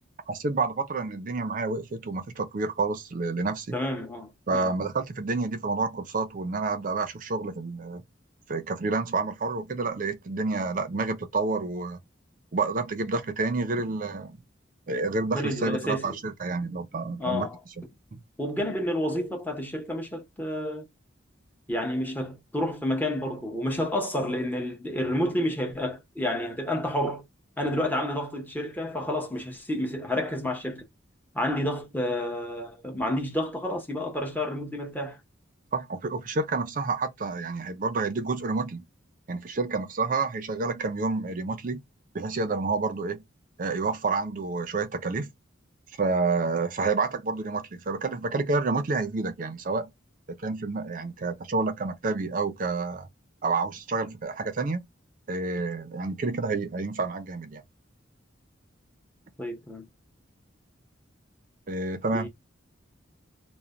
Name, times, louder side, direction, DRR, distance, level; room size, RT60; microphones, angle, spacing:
voice 1, 0.3-3.8 4.5-8.0 8.5-12.0 12.5-14.4 14.9-17.5 17.8-17.9 18.1-18.2 35.7-38.8 39.3-41.8 42.1-43.2 43.6-45.3 46.0-49.9 50.3-53.1 53.4-54.9 55.3-57.6 61.7-62.3, right 3 dB, 45° right, 0.5 m, -29 dB
voice 2, 3.7-4.7 15.3-16.2 17.2-17.6 18.4-20.9 21.7-27.2 27.6-30.8 31.3-35.2 59.4-59.9 62.1-62.3, left 1 dB, 10° left, 0.7 m, -30 dB
2.5 x 2.1 x 3.0 m
head